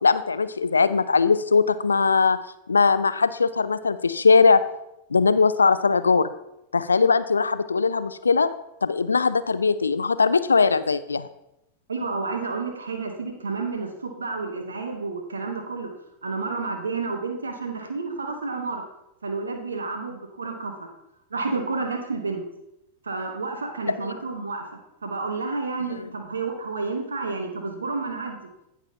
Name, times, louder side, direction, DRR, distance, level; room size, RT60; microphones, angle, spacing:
voice 1, 0.0-2.4 2.7-4.6 5.1-6.3 6.7-8.5 8.8-11.3 24.0-24.1, left 4 dB, 75° left, 14 dB, 0.4 m, -20 dB
voice 2, 11.9-15.9 16.2-18.8 19.2-20.7 21.3-22.4 23.0-28.4, right 4 dB, 75° right, 5 dB, 1.2 m, -30 dB
16.5 x 6.0 x 2.8 m, 0.85 s
figure-of-eight pair, 90°, 0 cm